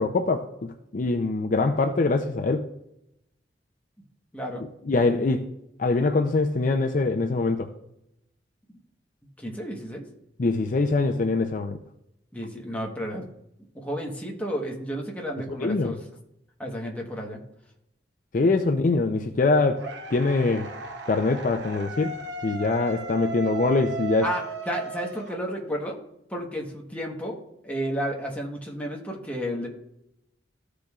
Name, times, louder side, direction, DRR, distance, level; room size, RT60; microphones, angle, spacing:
voice 1, 0.0-2.7 4.9-5.5 5.8-7.7 10.4-11.8 15.6-15.9 18.3-19.8 20.1-20.7 21.1-22.2 22.4-24.3, left 3 dB, 45° left, 5 dB, 0.5 m, -23 dB
voice 2, 4.3-4.7 9.4-10.0 12.3-13.3 13.7-16.0 16.6-17.4 24.2-26.0 26.3-27.4 27.6-29.7, equal, 10° left, -1 dB, 1.1 m, -32 dB
sound 1, 19.8-25.9, right 4 dB, 65° right, 0.7 m, -36 dB
14.0 x 5.0 x 2.4 m, 0.82 s
head